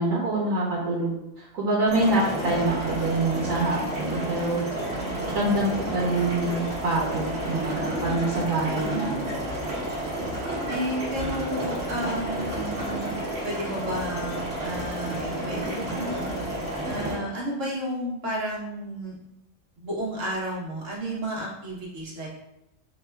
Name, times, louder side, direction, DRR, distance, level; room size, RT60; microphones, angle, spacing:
voice 1, 0.0-4.9 5.3-9.2, right 2 dB, 85° right, -6 dB, 1.4 m, -26 dB
sound 1, 1.9-17.2, right 1 dB, 50° right, 1.6 m, -31 dB
voice 2, 8.5-9.2 10.7-13.1 13.4-16.1 16.8-19.1 19.8-22.3, right 1 dB, 70° right, -4 dB, 1.6 m, -32 dB
5.5 x 2.4 x 3.3 m, 0.88 s
omnidirectional pair, 1.4 m